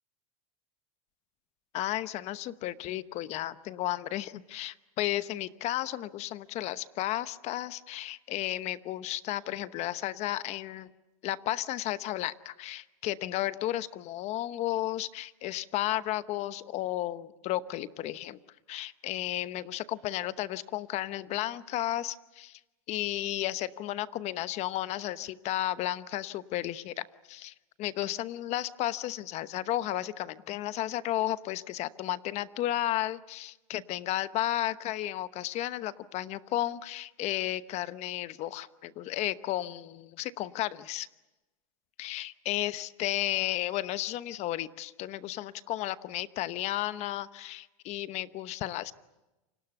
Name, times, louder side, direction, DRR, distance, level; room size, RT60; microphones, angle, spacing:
voice 1, 1.7-10.9 11.2-18.4 18.7-22.6 22.9-41.1 42.0-48.9, left 14 dB, 40° left, 14 dB, 1.0 m, -33 dB
28.5 x 25.5 x 7.0 m, 1.0 s
supercardioid pair, 135°, 18 cm